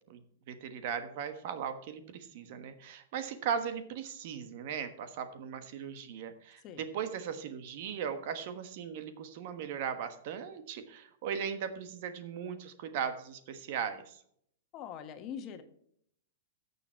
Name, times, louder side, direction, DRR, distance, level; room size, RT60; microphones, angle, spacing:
voice 1, 0.5-14.2, right 7 dB, 55° right, 10 dB, 1.3 m, -38 dB
voice 2, 14.7-15.6, left 8 dB, 40° left, 8 dB, 1.4 m, -42 dB
13.0 x 6.9 x 4.5 m, 0.67 s
hypercardioid pair, 120°, 0 cm